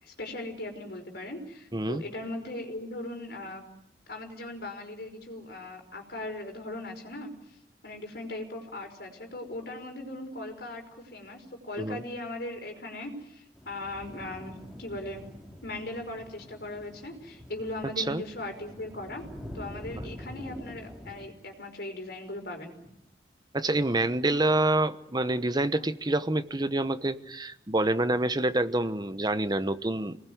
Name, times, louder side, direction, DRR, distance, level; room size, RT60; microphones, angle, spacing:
voice 1, 0.0-3.6 4.1-7.3 7.8-15.2 15.6-19.2 19.5-22.7, left 2 dB, 60° left, 5.3 m, -39 dB
voice 2, 1.7-2.0 11.8-12.0 18.0-18.2 23.5-30.2, right 2 dB, 25° right, 1.0 m, -27 dB
sound 1, 13.5-21.3, left 1 dB, ahead, 4.3 m, -45 dB
27.0 x 20.0 x 9.5 m
head